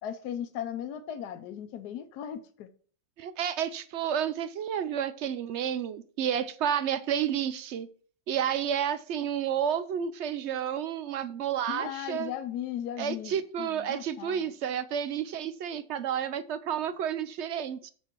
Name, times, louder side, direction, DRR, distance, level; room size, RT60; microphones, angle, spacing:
voice 1, 0.0-2.7 11.7-14.5, left 10 dB, 80° left, 1.3 m, -37 dB
voice 2, 3.2-7.9 8.3-12.3 13.0-17.9, right 9 dB, 70° right, 0.6 m, -31 dB
7.4 x 6.7 x 4.5 m
omnidirectional pair, 1.7 m